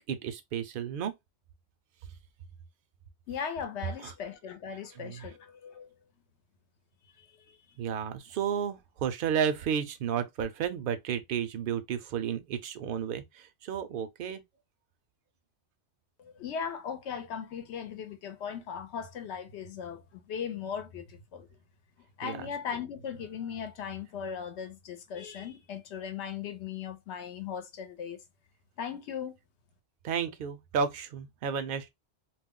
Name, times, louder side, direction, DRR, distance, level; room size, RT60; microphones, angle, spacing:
voice 1, 0.1-1.1 5.0-5.3 7.8-14.4 22.2-22.4 30.0-31.9, right 7 dB, 60° right, 0.6 m, -32 dB
voice 2, 3.3-5.9 7.5-7.6 16.2-21.5 22.2-28.2 28.8-29.3, left 7 dB, 75° left, 0.9 m, -38 dB
2.4 x 2.0 x 3.6 m
omnidirectional pair, 1.2 m